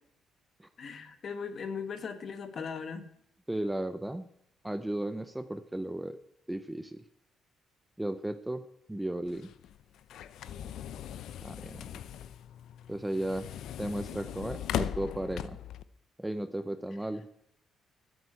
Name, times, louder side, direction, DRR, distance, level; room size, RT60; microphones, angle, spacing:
voice 1, 0.8-3.1 10.5-10.6, left 6 dB, 40° left, 10 dB, 1.4 m, -38 dB
voice 2, 3.5-4.3 4.6-6.2 6.5-7.0 8.0-9.5 11.4-11.8 12.9-13.5 13.8-15.6 16.2-17.3, right 1 dB, 5° right, 12 dB, 0.6 m, -35 dB
sound 1, 9.3-15.8, left 10 dB, 70° left, 0.6 m, -39 dB
13.0 x 8.0 x 8.9 m, 0.74 s
cardioid pair, 145°, 0 cm